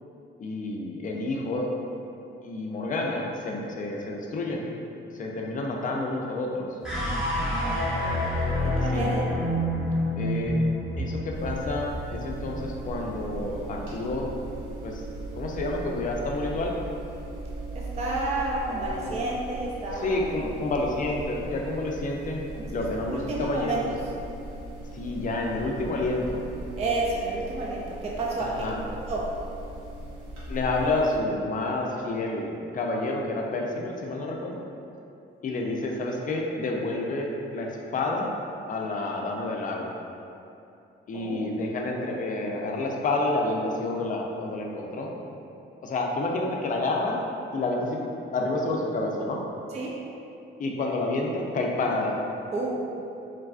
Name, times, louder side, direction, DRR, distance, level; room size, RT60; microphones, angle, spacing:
voice 1, 0.4-1.7 2.4-4.6 5.1-6.7 8.9-9.1 10.1-10.6 11.0-14.3 14.8-15.0 15.3-16.7 18.6-19.3 19.9-22.4 22.7-23.9 24.9-26.4 28.4-28.8 30.5-34.6 35.4-38.3 38.7-39.9 41.1-45.1 45.8-47.2 47.5-49.4 50.6-52.2, left 2 dB, 40° left, 0 dB, 0.4 m, -29 dB
sound 1, 6.8-13.2, left 1 dB, 5° right, 1.1 m, -28 dB
voice 2, 8.8-9.2 17.9-20.2 22.5-22.6 23.1-23.8 26.8-28.5 29.1-29.2 41.1-41.4 49.7-49.9 52.5-52.8, right 2 dB, 35° right, -3 dB, 0.4 m, -30 dB
sound 2, 11.3-31.2, right 2 dB, 85° right, 0.8 m, -38 dB
3.2 x 2.3 x 2.3 m, 2.7 s
cardioid pair, 90°, 20 cm